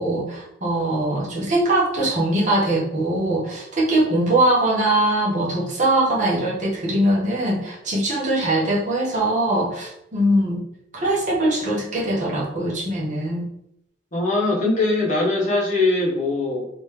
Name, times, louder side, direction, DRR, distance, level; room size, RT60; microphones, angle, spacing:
voice 1, 0.0-10.6 10.9-13.5, right 1 dB, 40° right, -5 dB, 1.1 m, -21 dB
voice 2, 14.1-16.7, left 2 dB, 40° left, -3 dB, 1.0 m, -21 dB
3.2 x 3.1 x 3.2 m, 0.77 s
head